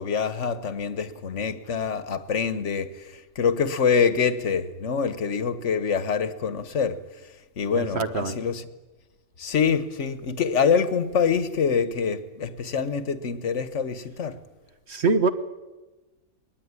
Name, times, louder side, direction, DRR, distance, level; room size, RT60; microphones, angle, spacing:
voice 1, 0.0-3.0 3.4-7.0 7.6-8.6 9.4-14.4, left 6 dB, 55° left, 1.5 m, -25 dB
voice 2, 7.7-8.4 14.9-15.3, right 4 dB, 50° right, 1.3 m, -24 dB
23.0 x 19.5 x 9.8 m
omnidirectional pair, 1.5 m